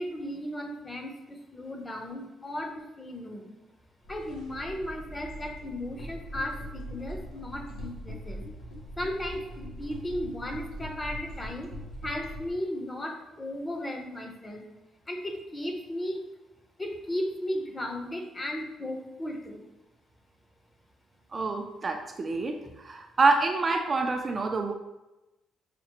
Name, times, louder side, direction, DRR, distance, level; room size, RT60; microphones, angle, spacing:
voice 1, 0.0-3.5 4.1-8.4 9.0-11.7 12.0-14.6 15.1-16.2 16.8-19.6, left 1 dB, 20° left, 3 dB, 0.7 m, -35 dB
sound 1, 4.0-12.5, equal, 90° left, 0.9 m, -41 dB
voice 2, 21.3-24.7, right 3 dB, 35° right, 4 dB, 0.4 m, -27 dB
5.7 x 2.0 x 2.9 m, 0.99 s
cardioid pair, 90°, 0 cm